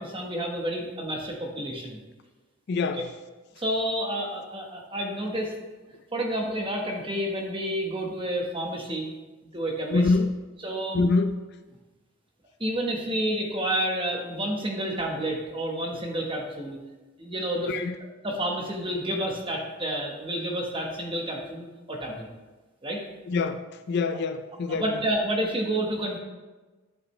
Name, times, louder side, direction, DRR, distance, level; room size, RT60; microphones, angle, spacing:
voice 1, 0.0-2.0 2.9-3.0 3.6-5.5 6.1-9.1 9.5-10.1 10.6-11.0 12.6-16.8 17.2-17.7 18.2-22.3 22.8-23.0 24.7-26.2, right 1 dB, 25° right, 1 dB, 1.1 m, -29 dB
voice 2, 2.7-3.1 9.9-10.3 10.9-11.4 17.6-18.0 23.3-25.0, left 3 dB, 50° left, 10 dB, 0.3 m, -25 dB
11.0 x 5.1 x 3.2 m, 1.2 s
head